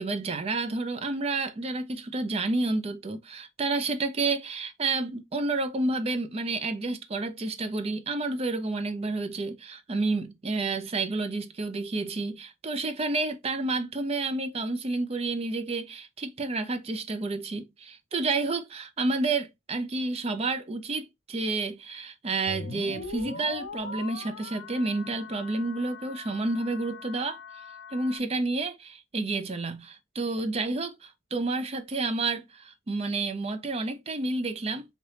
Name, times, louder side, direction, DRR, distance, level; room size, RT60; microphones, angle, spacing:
voice 1, 0.0-27.4 27.9-34.8, right 3 dB, 30° right, 0.5 m, -30 dB
sound 1, 22.5-28.2, left 4 dB, 65° left, 0.5 m, -41 dB
2.9 x 2.7 x 3.2 m
head